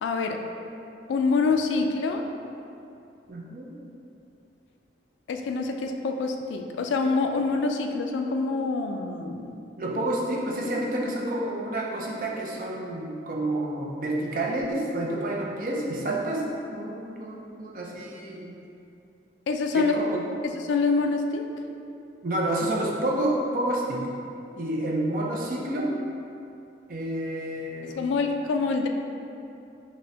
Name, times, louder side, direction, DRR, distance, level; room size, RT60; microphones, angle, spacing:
voice 1, 0.0-0.4 1.1-2.2 5.3-9.5 19.5-20.0 20.4-21.5 27.8-28.9, left 4 dB, 90° left, 4 dB, 0.3 m, -26 dB
voice 2, 3.3-3.7 9.8-18.6 19.7-20.2 22.2-24.1 24.5-26.0 26.9-28.0, right 1 dB, 50° right, -2 dB, 0.5 m, -29 dB
5.2 x 2.1 x 2.7 m, 2.7 s
head